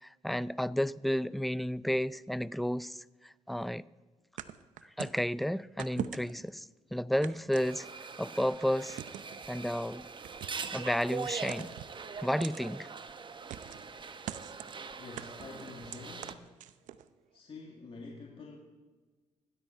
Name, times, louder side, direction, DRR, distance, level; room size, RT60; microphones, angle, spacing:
voice 1, 0.0-3.8 5.0-6.7 6.9-7.9 8.2-9.0 9.5-10.1 10.7-11.7 12.2-12.9, equal, ahead, 0.4 m, -32 dB
sound 1, 4.4-5.2 5.8-6.5 7.2-8.2 8.9-9.4 10.2-10.9 11.5-12.0 12.4-12.7 13.5-13.9 14.3-14.8 15.2-17.0, right 11 dB, 85° right, 0.7 m, -42 dB
sound 2, 7.5-16.3, right 5 dB, 40° right, 1.1 m, -42 dB
voice 2, 14.9-16.4 17.3-18.6, left 4 dB, 45° left, 2.0 m, -47 dB
15.5 x 12.5 x 5.6 m
cardioid pair, 75°, 13 cm